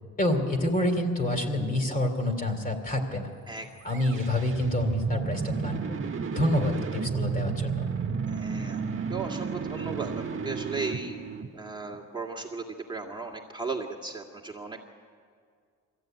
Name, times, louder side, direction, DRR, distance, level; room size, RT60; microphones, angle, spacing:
voice 1, 0.2-3.3 3.8-6.0 6.3-7.9, left 1 dB, 30° left, 5 dB, 3.4 m, -27 dB
sound 1, 3.8-12.0, right 6 dB, 45° right, 1.5 m, -32 dB
voice 2, 8.3-8.8 9.1-10.1 10.4-11.1 11.5-12.6 12.9-14.8, right 4 dB, 15° right, -1 dB, 2.3 m, -35 dB
22.5 x 15.0 x 9.3 m, 2.2 s
cardioid pair, 90°, 30 cm